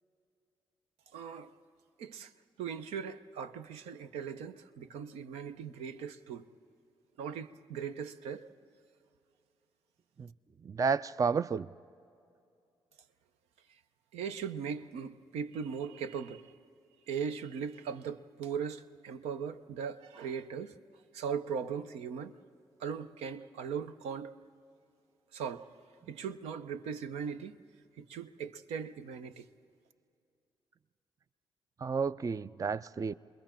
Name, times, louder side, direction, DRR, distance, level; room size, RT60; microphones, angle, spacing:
voice 1, 1.1-1.5 2.0-2.3 2.6-6.5 7.2-8.5 14.1-16.4 17.1-20.7 21.1-22.3 22.8-24.3 25.3-25.7 26.1-27.6 28.0-29.4, right 7 dB, 85° right, 0.7 m, -39 dB
voice 2, 10.6-11.7 31.8-33.1, right 5 dB, 35° right, 0.4 m, -31 dB
28.0 x 21.5 x 4.4 m
supercardioid pair, 50°, 10 cm